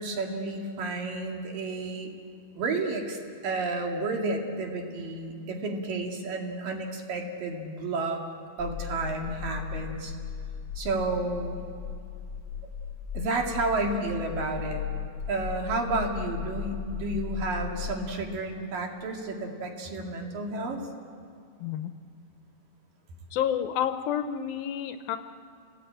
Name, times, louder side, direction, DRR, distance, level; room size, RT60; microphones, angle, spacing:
voice 1, 0.0-2.1 2.6-3.2 3.4-8.2 8.6-10.1 10.8-11.6 13.1-14.8 15.3-20.8, right 3 dB, 65° right, 2 dB, 3.8 m, -31 dB
sound 1, 8.6-18.0, left 8 dB, 25° left, 1.8 m, -37 dB
voice 2, 21.6-21.9 23.3-25.2, left 9 dB, 75° left, 9 dB, 2.4 m, -29 dB
30.0 x 18.0 x 8.9 m, 2.3 s
omnidirectional pair, 4.5 m